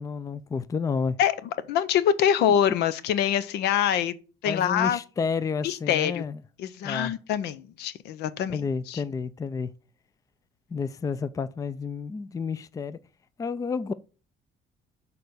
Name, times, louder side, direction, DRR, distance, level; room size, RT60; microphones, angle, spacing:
voice 1, 0.0-1.2 4.5-6.4 6.8-7.1 8.5-9.7 10.7-13.0 13.4-13.9, left 5 dB, 20° left, 0.4 m, -30 dB
voice 2, 1.7-4.1 4.4-5.0 5.6-6.2 6.6-9.0, left 9 dB, 80° left, 0.7 m, -25 dB
6.7 x 4.1 x 6.5 m
cardioid pair, 110°, 17 cm